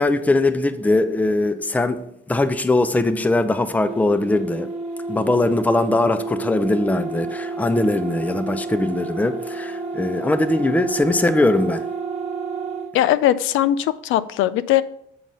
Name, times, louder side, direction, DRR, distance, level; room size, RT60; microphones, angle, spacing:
voice 1, 0.0-4.7 5.1-11.8, left 2 dB, 5° left, 11 dB, 0.5 m, -21 dB
sound 1, 3.9-12.9, right 4 dB, 35° right, 1.2 m, -30 dB
voice 2, 12.9-14.8, left 12 dB, 85° left, 15 dB, 0.4 m, -19 dB
7.5 x 3.9 x 5.2 m, 0.72 s
cardioid pair, 90°, 20 cm